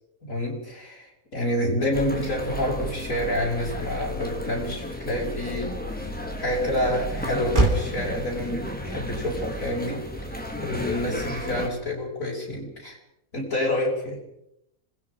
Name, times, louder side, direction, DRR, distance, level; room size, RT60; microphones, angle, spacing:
voice 1, 0.2-6.0 6.4-13.0 13.3-14.2, left 1 dB, 65° left, -3 dB, 5.6 m, -28 dB
sound 1, 1.9-11.7, left 1 dB, 5° left, 2.9 m, -33 dB
Motor vehicle (road), 4.5-12.1, right 1 dB, 30° right, 3.1 m, -32 dB
27.0 x 20.5 x 5.0 m, 0.81 s
omnidirectional pair, 1.6 m